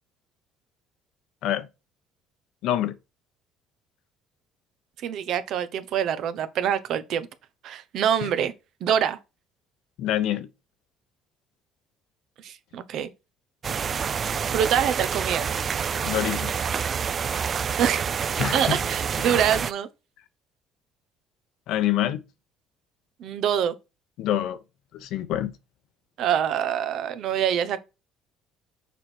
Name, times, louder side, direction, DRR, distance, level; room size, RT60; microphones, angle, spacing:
voice 1, 2.6-2.9 10.0-10.5 16.0-16.5 18.4-18.8 21.7-22.2 24.2-24.6 24.9-25.5, left 12 dB, 70° left, 1.0 m, -26 dB
voice 2, 5.0-7.3 7.6-8.5 8.8-9.2 12.4-13.1 14.5-15.5 17.8-18.1 18.5-19.9 23.2-23.7 26.2-27.8, right 9 dB, 60° right, 1.0 m, -25 dB
sound 1, 13.6-19.7, right 7 dB, 35° right, 0.3 m, -27 dB
7.1 x 4.6 x 4.5 m
cardioid pair, 120°, 0 cm